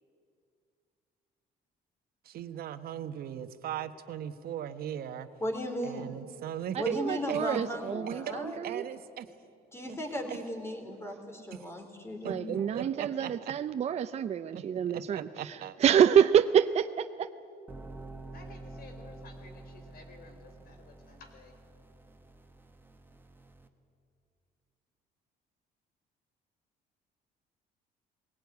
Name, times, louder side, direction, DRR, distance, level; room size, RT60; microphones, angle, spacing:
voice 1, 2.2-5.3 5.8-7.0 7.3-7.6 8.0-8.4 8.6-9.3 9.9-10.0 10.3-10.4 11.5-11.6 12.2-13.5 14.5-15.8, right 10 dB, 65° right, 10 dB, 1.2 m, -38 dB
voice 2, 5.4-6.2 6.8-8.6 9.7-12.7, equal, 15° left, 4 dB, 3.6 m, -36 dB
voice 3, 6.7-8.8 12.2-17.3, right 8 dB, 40° right, 10 dB, 0.6 m, -27 dB
sound 1, 17.7-23.7, right 2 dB, 10° right, 1.5 m, -48 dB
voice 4, 18.3-21.6, left 4 dB, 60° left, 5 dB, 3.9 m, -53 dB
20.5 x 17.5 x 9.6 m, 2.5 s
cardioid pair, 110°, 17 cm